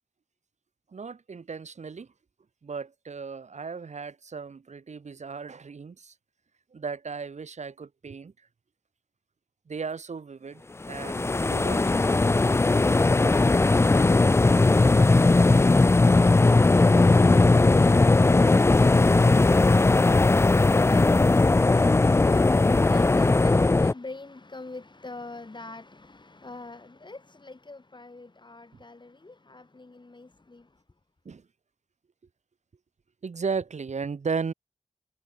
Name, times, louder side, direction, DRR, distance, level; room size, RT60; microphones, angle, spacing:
voice 1, 0.9-2.1 2.6-6.1 6.7-8.3 9.7-12.2 31.3-31.4 33.2-34.5, right 5 dB, 85° right, 2.1 m, -35 dB
sound 1, 10.9-23.9, left 3 dB, 20° left, 0.4 m, -19 dB
voice 2, 16.6-30.8, left 3 dB, 40° left, 3.6 m, -44 dB
wide cardioid pair, 65°, 12 cm